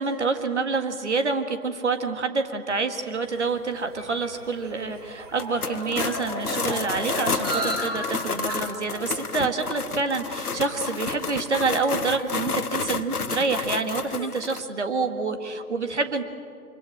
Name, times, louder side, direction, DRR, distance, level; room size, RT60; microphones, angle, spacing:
voice 1, 0.0-16.2, right 4 dB, 50° right, 7 dB, 1.9 m, -27 dB
sound 1, 3.1-7.7, equal, 85° right, 7.5 m, -36 dB
sound 2, 3.3-13.8, right 2 dB, 25° right, 3.2 m, -38 dB
sound 3, 5.3-14.6, left 5 dB, 80° left, 1.0 m, -30 dB
24.5 x 22.5 x 7.7 m, 2.4 s
figure-of-eight pair, 150°, 45 cm